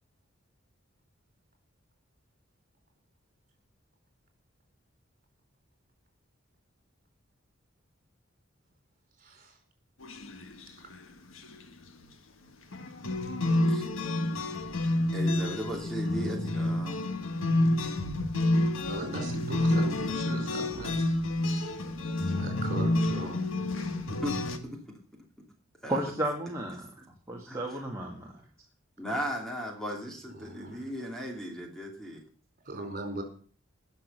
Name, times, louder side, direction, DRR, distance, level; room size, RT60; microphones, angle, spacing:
voice 1, 9.2-9.6 18.4-21.2 22.3-23.4 30.3-30.9 32.6-33.2, right 2 dB, 45° right, 4 dB, 4.7 m, -39 dB
sound 1, 10.0-10.6 10.9-11.0 11.4-11.6 12.7-24.6, left 1 dB, 75° left, 1.5 m, -29 dB
voice 2, 15.1-17.1 24.1-24.8 25.8-26.0 27.5-27.9 29.0-32.2, equal, 5° left, 0 dB, 2.7 m, -37 dB
voice 3, 25.9-26.9 27.3-28.3, right 1 dB, 15° right, -3 dB, 2.2 m, -32 dB
18.5 x 6.6 x 6.7 m, 0.44 s
head